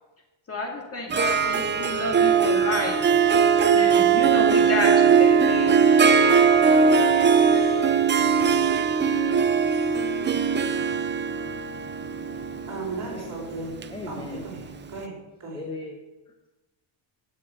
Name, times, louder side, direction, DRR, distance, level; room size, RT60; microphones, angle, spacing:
voice 1, 0.5-3.0 3.7-5.9, left 2 dB, 30° left, 1 dB, 2.4 m, -30 dB
Harp, 1.1-14.7, right 6 dB, 25° right, 0.5 m, -20 dB
voice 2, 5.8-8.9, left 4 dB, 55° left, 2 dB, 2.3 m, -42 dB
voice 3, 12.2-13.8 14.1-15.6, right 3 dB, 40° right, -3 dB, 4.9 m, -36 dB
voice 4, 13.9-14.5 15.5-16.0 16.3-16.5, left 3 dB, 10° left, 3 dB, 0.9 m, -37 dB
12.5 x 6.8 x 7.8 m, 1.1 s
cardioid pair, 150°, 49 cm